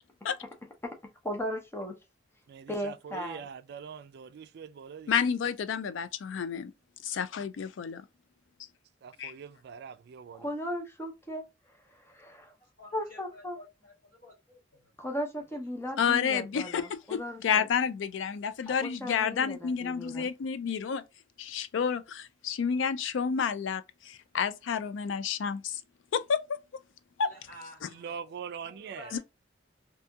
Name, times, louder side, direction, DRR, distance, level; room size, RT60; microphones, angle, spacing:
voice 1, 1.3-1.9 2.7-3.5 10.3-11.4 11.9-12.5 12.9-13.6 15.0-17.7 18.7-20.3, equal, 15° left, 0.6 m, -37 dB
voice 2, 2.5-5.2 9.0-10.5 27.9-29.2, right 7 dB, 60° right, 0.3 m, -43 dB
voice 3, 5.1-6.7 7.0-8.0 9.2-9.3 16.0-21.0 21.4-25.8 26.1-26.4 27.2-27.3 29.1-29.2, left 7 dB, 75° left, 0.4 m, -30 dB
voice 4, 12.6-14.9 15.5-15.9 27.2-29.2, left 1 dB, 50° left, 1.6 m, -52 dB
2.7 x 2.6 x 2.2 m
head